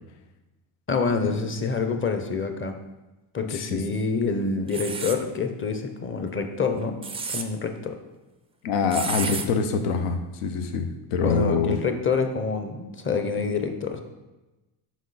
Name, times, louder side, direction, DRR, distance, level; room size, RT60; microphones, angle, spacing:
voice 1, 0.9-2.8 3.3-7.0 7.3-8.0 11.2-14.0, left 4 dB, 25° left, 6 dB, 0.7 m, -27 dB
voice 2, 3.5-3.8 8.6-11.8, left 5 dB, 85° left, 7 dB, 0.9 m, -25 dB
sound 1, 4.7-5.2 6.8-7.5 8.9-9.5, right 4 dB, 15° right, 0.3 m, -31 dB
6.2 x 4.7 x 4.0 m, 1.1 s
cardioid pair, 105°, 49 cm